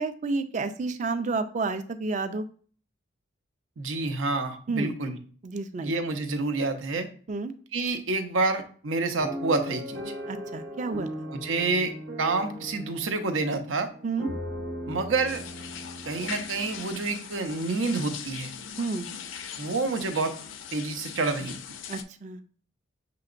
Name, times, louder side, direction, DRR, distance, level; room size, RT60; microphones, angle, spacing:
voice 1, 0.0-2.4 4.7-4.9 5.4-5.9 7.3-7.5 10.3-11.3 14.0-14.3 18.8-19.1 21.9-22.4, right 3 dB, 35° right, 10 dB, 0.4 m, -30 dB
voice 2, 3.8-5.2 5.8-7.1 7.7-10.1 11.3-11.9 12.2-13.9 14.9-15.4 16.1-18.5 19.6-20.3 20.7-21.6, right 3 dB, 85° right, 7 dB, 0.7 m, -28 dB
sound 1, 9.2-17.3 17.9-18.0 18.3-18.5, equal, 55° right, 0.8 m, -38 dB
sound 2, 15.3-22.0, left 7 dB, 75° left, 0.4 m, -40 dB
6.8 x 2.9 x 2.5 m, 0.43 s
head